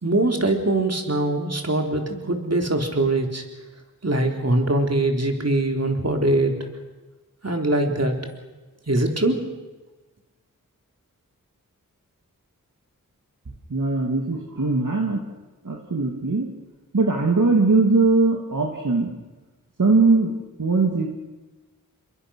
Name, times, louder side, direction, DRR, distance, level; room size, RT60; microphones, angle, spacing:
voice 1, 0.0-3.4 4.0-6.5 7.4-8.2 8.9-9.4, right 2 dB, 50° right, 3 dB, 3.9 m, -22 dB
voice 2, 13.7-15.2 15.6-16.5 16.9-19.1 19.8-21.1, right 3 dB, 65° right, 0 dB, 2.7 m, -20 dB
28.5 x 22.5 x 6.5 m, 1.2 s
wide cardioid pair, 50°, 34 cm